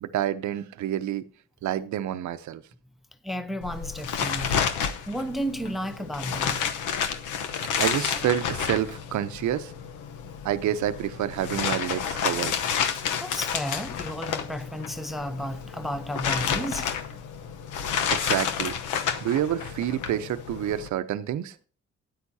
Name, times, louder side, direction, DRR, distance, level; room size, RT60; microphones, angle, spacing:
voice 1, 0.0-1.2 1.6-2.6 7.8-9.7 10.4-12.5 18.1-18.7 19.2-21.5, right 11 dB, 70° right, 0.8 m, -28 dB
voice 2, 3.2-4.6 5.1-6.6 13.2-16.9, equal, ahead, 0.7 m, -32 dB
sound 1, 3.6-20.9, left 7 dB, 85° left, 1.0 m, -30 dB
13.0 x 9.4 x 2.8 m
cardioid pair, 90°, 30 cm